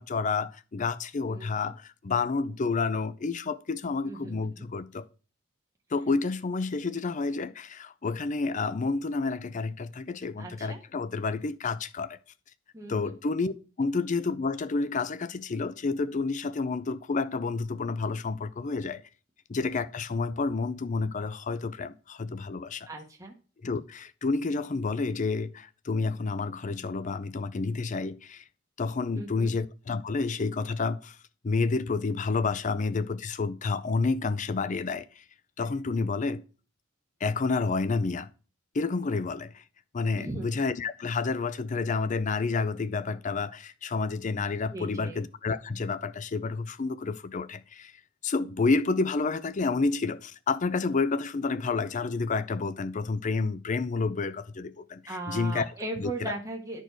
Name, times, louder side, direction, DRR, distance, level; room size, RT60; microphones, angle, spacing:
voice 1, 0.0-5.1 5.9-12.2 12.9-19.0 19.5-22.9 23.6-28.4 28.8-31.2 31.4-35.2 35.6-36.4 37.2-38.3 38.7-39.6 39.9-47.9 48.2-55.7 56.0-56.3, left 4 dB, 40° left, 0.5 m, -29 dB
voice 2, 1.3-1.8 4.0-4.6 10.4-10.8 12.7-13.2 22.9-23.3 29.1-29.5 40.2-40.6 44.7-45.2 55.1-56.8, right 2 dB, 15° right, 1.0 m, -38 dB
12.0 x 4.5 x 4.6 m
head